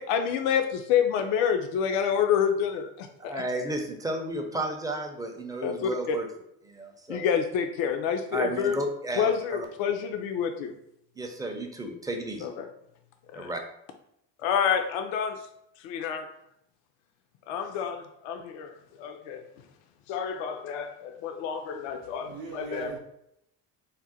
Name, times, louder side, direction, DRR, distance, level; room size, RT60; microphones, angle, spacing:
voice 1, 0.0-3.4 5.6-6.2 7.1-8.8 9.2-10.7 12.4-12.7 13.3-13.5 14.4-15.4 15.8-16.3 17.5-19.4 20.1-22.9, left 7 dB, 70° left, 5 dB, 0.5 m, -28 dB
voice 2, 3.3-6.3 6.6-7.2 8.3-9.7 11.2-12.5 13.3-13.6, right 1 dB, 10° right, 3 dB, 0.4 m, -33 dB
voice 3, 21.9-23.0, right 4 dB, 70° right, 0 dB, 0.7 m, -40 dB
2.6 x 2.1 x 4.0 m, 0.76 s
supercardioid pair, 75°, 49 cm